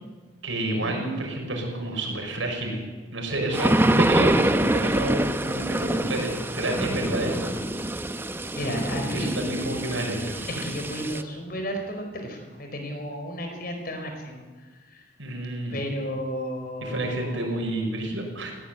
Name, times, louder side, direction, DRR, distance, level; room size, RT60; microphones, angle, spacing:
voice 1, 0.4-2.9 3.1-7.6 9.1-10.6 15.2-15.9 16.8-18.5, right 1 dB, 80° right, 1 dB, 6.4 m, -29 dB
sound 1, 3.5-11.2, right 1 dB, 10° right, 0.7 m, -25 dB
voice 2, 8.6-9.4 10.6-14.4 14.9-15.0 15.7-17.5, equal, 50° left, 4 dB, 4.6 m, -33 dB
19.5 x 16.5 x 9.4 m, 1.3 s
head